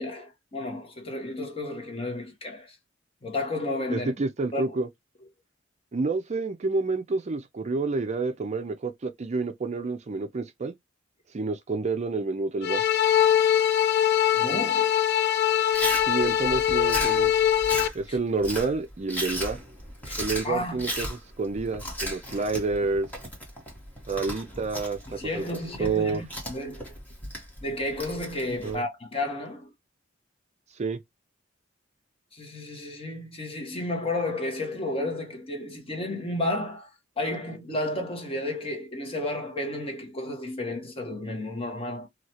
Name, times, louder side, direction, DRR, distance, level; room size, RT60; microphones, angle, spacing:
voice 1, 0.0-2.8 3.2-4.1 4.5-4.8 14.3-14.9 17.7-17.8 18.1-18.2 20.0-20.9 25.1-26.9 27.6-29.7 32.3-36.9 37.2-42.1, left 2 dB, 30° left, 0.9 m, -32 dB
voice 2, 3.9-4.9 5.9-10.7 11.3-12.8 16.1-17.3 17.9-19.6 20.2-21.1 21.4-23.1 24.1-25.4 25.8-26.2 28.6-28.8 30.8-31.0, right 3 dB, 35° right, 0.4 m, -28 dB
sound 1, 12.6-17.9, left 10 dB, 55° left, 0.4 m, -22 dB
Chewing mastication, 15.7-28.7, equal, 10° left, 1.3 m, -36 dB
3.1 x 2.3 x 2.7 m
head